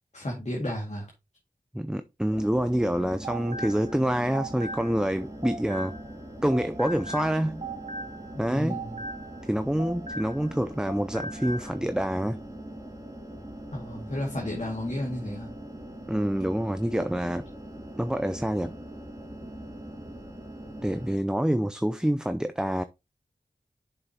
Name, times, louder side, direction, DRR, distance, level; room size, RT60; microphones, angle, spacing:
voice 1, 0.1-1.1 8.3-9.0 13.7-15.5, left 1 dB, 45° left, 2.1 m, -33 dB
voice 2, 1.7-5.9 6.4-7.7 8.4-8.8 9.5-12.4 16.1-17.4 18.0-18.7 20.8-22.8, equal, 5° right, 0.5 m, -27 dB
sound 1, 2.3-21.2, right 1 dB, 20° right, 2.7 m, -42 dB
sound 2, 3.0-6.2 6.5-10.6 10.9-11.7, right 2 dB, 45° right, 1.3 m, -39 dB
7.8 x 6.2 x 2.9 m
wide cardioid pair, 45°, 16 cm